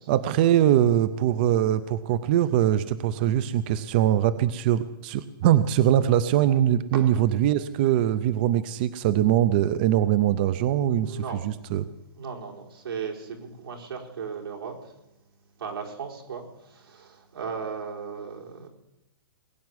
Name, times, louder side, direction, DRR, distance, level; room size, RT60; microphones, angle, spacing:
voice 1, 0.1-11.9, right 11 dB, 25° right, 14 dB, 0.4 m, -22 dB
voice 2, 11.0-11.4 12.2-15.0 15.6-18.7, right 6 dB, 90° right, 0 dB, 4.4 m, -36 dB
20.5 x 7.2 x 9.5 m, 0.91 s
hypercardioid pair, 175°, 12 cm